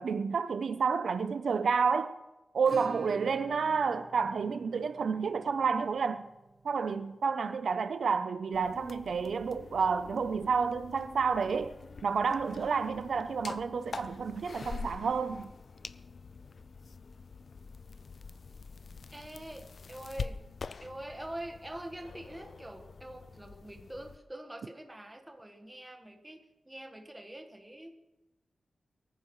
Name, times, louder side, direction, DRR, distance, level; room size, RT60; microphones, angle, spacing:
voice 1, 0.0-2.2 2.5-6.3 6.6-11.7 12.0-15.5, right 5 dB, 75° right, 0.6 m, -30 dB
Acoustic guitar / Strum, 2.7-11.3 11.5-11.6 11.9-12.0 12.4-12.5 14.5-14.6 15.7-15.8, right 4 dB, 45° right, 1.1 m, -51 dB
sound 1, 8.5-24.2, left 4 dB, 50° left, 0.4 m, -46 dB
voice 2, 19.1-20.4 20.8-27.9, right 1 dB, 10° right, 1.4 m, -45 dB
23.0 x 14.5 x 3.2 m
wide cardioid pair, 175°, 0 cm